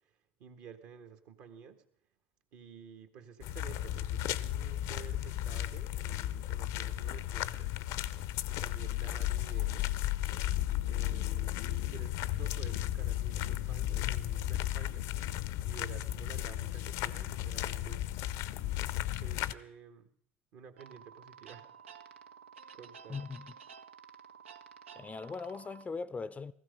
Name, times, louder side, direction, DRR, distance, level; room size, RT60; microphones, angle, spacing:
voice 1, 0.4-1.8 2.5-7.7 8.5-10.0 10.9-15.1 15.6-18.2 19.2-20.1 20.5-21.7 22.1-22.2 22.7-23.2, right 7 dB, 60° right, 1.6 m, -52 dB
sound 1, 3.4-19.5, left 14 dB, 65° left, 0.6 m, -34 dB
sound 2, 20.8-25.8, right 7 dB, 90° right, 0.7 m, -52 dB
voice 2, 23.1-23.5 25.0-26.5, left 4 dB, 20° left, 0.5 m, -40 dB
16.0 x 15.0 x 5.3 m
hypercardioid pair, 80°, 6 cm